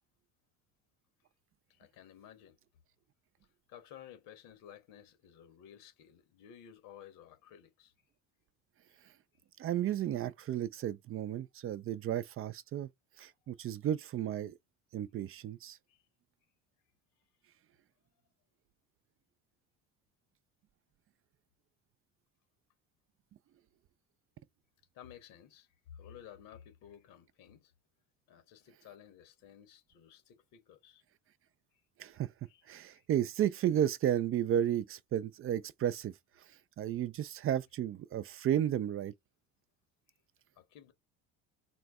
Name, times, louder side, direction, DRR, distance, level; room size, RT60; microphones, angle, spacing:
voice 1, 1.7-2.6 3.7-7.9 15.9-16.0 24.9-27.7 28.3-31.0 31.7-31.8 32.5-32.6 32.9-33.1 40.6-40.9, left 9 dB, 75° left, 1.3 m, -55 dB
voice 2, 9.6-12.9 13.2-14.6 14.9-15.8 32.0-32.3 32.7-36.1 36.8-39.1, right 10 dB, 40° right, 0.4 m, -33 dB
4.4 x 2.0 x 3.5 m
supercardioid pair, 80°, 33 cm